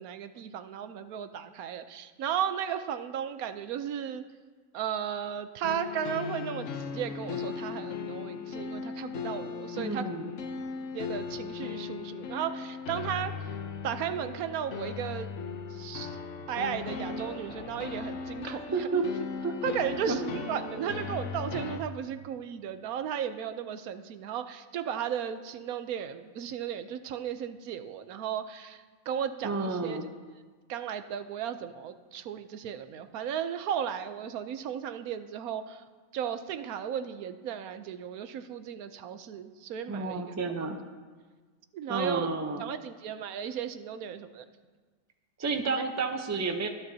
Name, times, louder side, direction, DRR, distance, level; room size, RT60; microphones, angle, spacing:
voice 1, 0.0-4.2 4.7-10.0 10.9-13.3 13.8-15.3 15.7-16.2 16.5-19.1 19.6-30.0 30.7-35.8 36.1-40.2 41.7-42.3 42.6-44.4, right 9 dB, 80° right, 10 dB, 1.1 m, -35 dB
sound 1, 5.6-21.8, left 5 dB, 60° left, 1.1 m, -38 dB
voice 2, 9.8-10.3 18.5-19.0 19.4-19.5 20.1-20.2 29.4-30.1 39.9-40.8 41.9-42.6 45.4-46.7, right 4 dB, 15° right, 5 dB, 0.5 m, -31 dB
24.0 x 9.4 x 2.8 m, 1.4 s
omnidirectional pair, 1.5 m